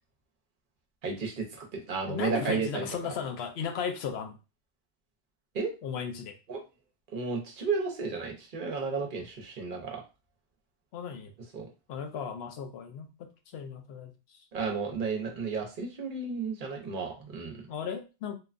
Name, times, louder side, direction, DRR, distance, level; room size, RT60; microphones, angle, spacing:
voice 1, 1.0-2.9 5.5-5.7 6.5-6.6 7.1-10.0 11.5-11.7 14.5-17.6, right 4 dB, 55° right, 1 dB, 0.8 m, -33 dB
voice 2, 2.1-4.4 5.8-6.3 10.9-11.3 11.9-13.1 13.5-14.1 17.7-18.3, left 6 dB, 80° left, 6 dB, 0.9 m, -35 dB
2.9 x 2.2 x 2.4 m, 0.29 s
omnidirectional pair, 1.0 m